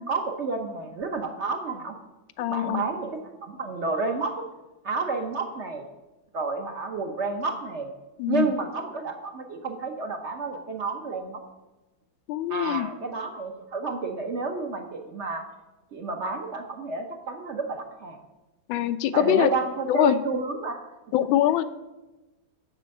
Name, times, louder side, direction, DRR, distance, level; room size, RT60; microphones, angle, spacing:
voice 1, 0.0-2.0 2.5-4.4 4.8-5.8 6.3-7.9 8.3-11.4 12.5-15.4 15.9-18.2 19.1-20.8, right 4 dB, 60° right, 5 dB, 0.7 m, -30 dB
voice 2, 2.4-2.8 8.2-8.5 12.3-12.9 18.7-19.5 19.9-20.2 21.1-21.6, left 13 dB, 85° left, 12 dB, 1.4 m, -23 dB
7.7 x 6.2 x 7.5 m, 1.1 s
omnidirectional pair, 2.1 m